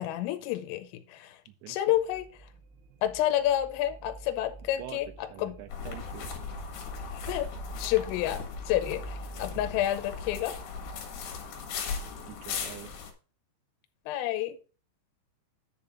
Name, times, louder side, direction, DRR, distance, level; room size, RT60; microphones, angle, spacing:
voice 1, 0.0-1.4 1.7-2.5 3.0-5.1 5.4-5.6 7.1-7.5 7.8-10.6 14.1-14.6, left 13 dB, 90° left, 3.3 m, -29 dB
voice 2, 1.5-2.0 4.8-5.0 5.3-6.3 12.3-12.9, right 12 dB, 75° right, 3.0 m, -45 dB
sound 1, 1.9-13.0, right 3 dB, 90° right, 3.6 m, -47 dB
sound 2, 5.7-13.1, left 6 dB, 60° left, 3.3 m, -38 dB
10.5 x 4.0 x 6.8 m
omnidirectional pair, 5.9 m